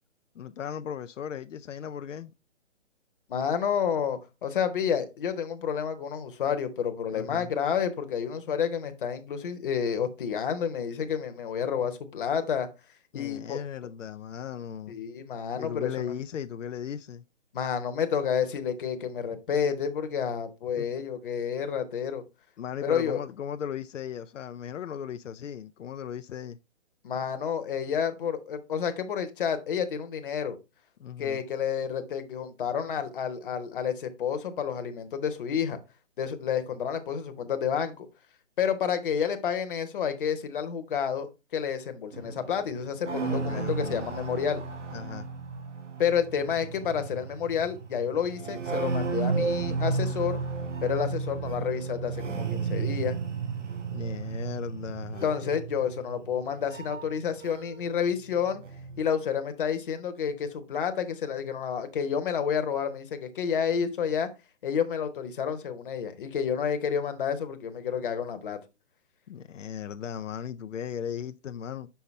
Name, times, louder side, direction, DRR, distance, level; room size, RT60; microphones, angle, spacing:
voice 1, 0.3-2.3 7.1-7.5 13.1-15.0 15.5-17.2 20.8-20.9 22.6-26.6 31.0-31.4 43.2-44.0 44.9-45.3 53.9-55.3 69.3-71.9, left 8 dB, 85° left, 0.5 m, -37 dB
voice 2, 3.3-12.7 13.1-13.6 14.9-16.1 17.5-22.2 22.8-23.2 27.0-30.6 31.2-35.8 36.2-38.1 38.6-44.6 46.0-50.4 50.8-53.1 55.2-58.6 59.0-64.3 64.6-68.6, left 7 dB, 45° left, 1.0 m, -30 dB
sound 1, 42.1-57.9 58.2-59.0, right 4 dB, 75° right, 1.5 m, -33 dB
5.7 x 5.4 x 3.2 m
hypercardioid pair, 155°, 36 cm